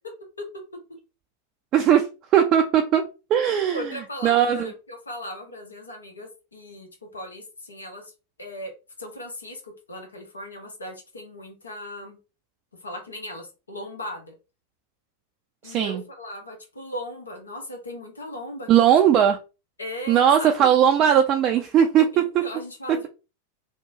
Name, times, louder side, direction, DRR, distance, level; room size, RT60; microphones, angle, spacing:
voice 1, 1.7-3.0 3.3-3.9 4.2-4.7 15.6-16.0 18.7-19.4 20.1-22.4 22.9-23.1, right 9 dB, 35° right, 0.3 m, -19 dB
voice 2, 3.7-8.1 8.4-8.7 9.0-12.2 12.8-14.3 15.6-18.9 19.8-20.7 22.1-23.1, left 1 dB, 75° left, 0.9 m, -37 dB
2.9 x 2.1 x 2.7 m
figure-of-eight pair, 90°, 0 cm